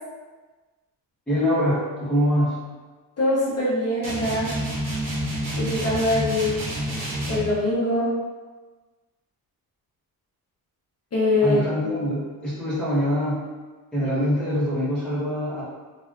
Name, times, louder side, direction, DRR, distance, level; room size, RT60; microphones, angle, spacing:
voice 1, 1.3-2.6 11.4-13.5 13.9-15.6, equal, 5° left, -11 dB, 1.2 m, -24 dB
voice 2, 3.2-4.5 5.6-6.6 7.3-8.1 11.1-11.6, left 2 dB, 40° left, -10 dB, 0.9 m, -23 dB
sound 1, 4.0-7.5, right 1 dB, 60° right, 1.2 m, -28 dB
3.2 x 2.6 x 2.5 m, 1.3 s
wide cardioid pair, 140°, 37 cm